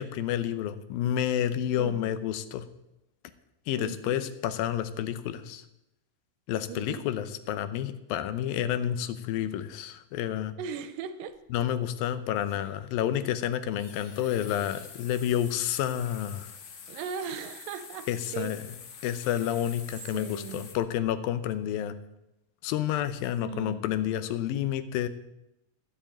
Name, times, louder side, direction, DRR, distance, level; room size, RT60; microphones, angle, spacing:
voice 1, 0.0-2.7 3.7-5.6 6.5-10.5 11.5-16.5 18.1-18.7 19.0-22.0 22.6-25.1, left 11 dB, 90° left, 2.6 m, -30 dB
voice 2, 1.8-2.2 3.8-4.2 6.7-7.1 10.6-11.4 12.5-12.7 16.9-18.6 20.1-20.7 23.4-23.8, right 7 dB, 85° right, 2.4 m, -38 dB
sound 1, 11.3-11.4 12.4-12.8 13.8-20.8, left 6 dB, 60° left, 1.4 m, -47 dB
13.0 x 7.0 x 8.6 m
omnidirectional pair, 4.1 m